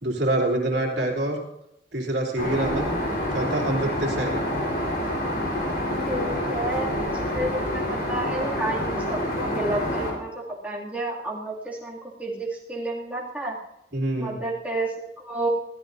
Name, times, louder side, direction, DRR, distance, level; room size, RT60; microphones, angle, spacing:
voice 1, 0.0-1.4 1.9-3.0 3.3-4.4 13.9-14.4, right 1 dB, 65° right, -1 dB, 3.0 m, -26 dB
voice 2, 0.7-1.1 6.1-13.6 14.2-15.5, right 1 dB, 10° right, -6 dB, 2.4 m, -31 dB
Aircraft, 2.4-10.1, left 1 dB, 50° left, 4.3 m, -27 dB
22.0 x 15.5 x 2.7 m, 0.83 s
head